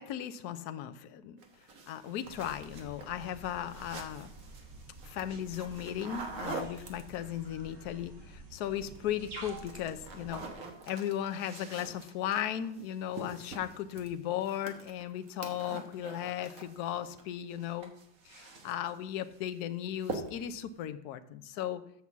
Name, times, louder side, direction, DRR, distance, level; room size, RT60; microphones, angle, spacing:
voice 1, 0.0-1.4 1.9-4.3 5.0-10.5 10.9-17.9 18.2-21.8, left 11 dB, 70° left, 9 dB, 0.9 m, -36 dB
sound 1, 1.4-7.5 8.6-9.0 9.3-17.2 17.5-19.0 19.3-19.6 20.0-20.6, right 4 dB, 50° right, 1.4 m, -45 dB
sound 2, 2.2-10.5, right 2 dB, 80° right, 3.3 m, -50 dB
8.1 x 6.0 x 7.2 m, 0.74 s
omnidirectional pair, 2.3 m